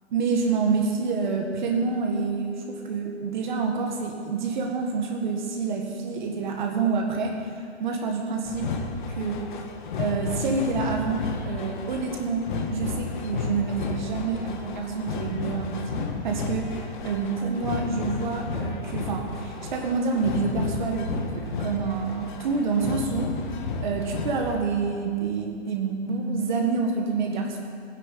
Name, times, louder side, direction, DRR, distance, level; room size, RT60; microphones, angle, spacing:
voice 1, 0.1-8.7 9.1-9.4 10.0-23.4 23.8-27.6, right 4 dB, 45° right, 2 dB, 1.7 m, -27 dB
sound 1, 8.5-24.6, left 4 dB, 45° left, 1.6 m, -32 dB
15.5 x 10.0 x 8.2 m, 2.3 s
hypercardioid pair, 155°, 34 cm